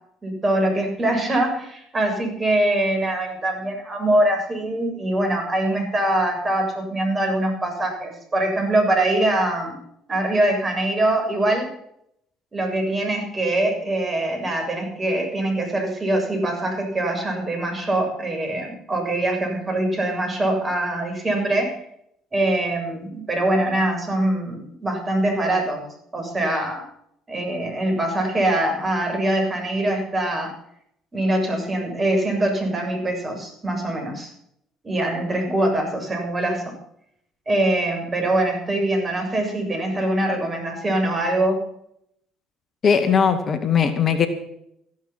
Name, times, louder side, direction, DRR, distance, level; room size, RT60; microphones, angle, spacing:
voice 1, 0.2-9.8 10.1-11.7 12.5-21.8 22.3-25.8 26.1-26.8 27.3-30.5 31.1-34.3 34.8-36.7 37.5-41.6, right 1 dB, 30° right, 3 dB, 7.1 m, -23 dB
voice 2, 42.8-44.3, left 7 dB, 45° left, 8 dB, 2.0 m, -19 dB
15.0 x 12.5 x 6.0 m, 0.73 s
hypercardioid pair, 55°, 0 cm